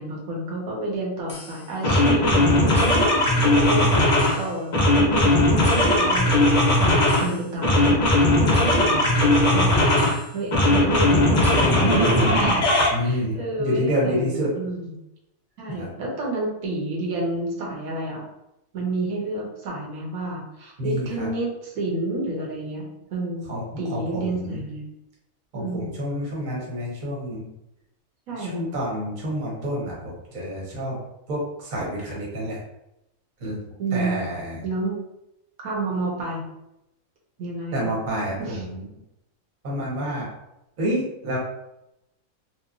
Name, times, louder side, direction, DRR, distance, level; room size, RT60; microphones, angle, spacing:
voice 1, 0.0-4.0 4.4-9.7 10.3-12.6 13.0-15.0 15.6-18.2 18.7-22.8 23.1-23.5 23.8-24.8 25.5-25.9 28.3-28.5 33.8-34.2 34.6-35.0 35.6-36.4 37.4-37.9 38.4-38.6, right 2 dB, 80° right, -2 dB, 1.1 m, -30 dB
sound 1, 1.3-1.4 1.8-4.4 4.7-7.3 7.6-10.1 10.5-12.9, left 1 dB, 50° left, 0.6 m, -18 dB
voice 2, 12.9-14.5 15.7-15.9 20.8-21.3 23.5-23.6 23.9-24.6 25.5-27.5 28.4-31.0 31.3-32.6 33.4-33.6 33.9-34.6 37.7-38.8 39.6-40.3 40.8-41.4, equal, 40° right, -4 dB, 0.9 m, -28 dB
2.9 x 2.1 x 2.4 m, 0.86 s
omnidirectional pair, 1.5 m